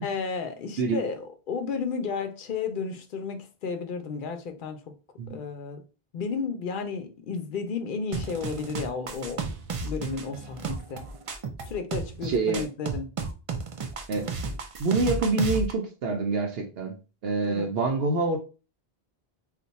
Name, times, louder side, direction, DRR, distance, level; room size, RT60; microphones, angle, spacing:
voice 1, 0.0-4.9 5.3-5.8 6.1-9.4 9.8-11.0 11.7-13.1 17.4-17.7, left 5 dB, 60° left, 0.7 m, -33 dB
sound 1, 8.1-15.7, right 4 dB, 55° right, 0.4 m, -33 dB
voice 2, 12.2-12.6 14.1-14.4 14.8-16.9 17.2-18.4, right 3 dB, 80° right, 0.9 m, -26 dB
2.5 x 2.2 x 3.9 m
omnidirectional pair, 1.0 m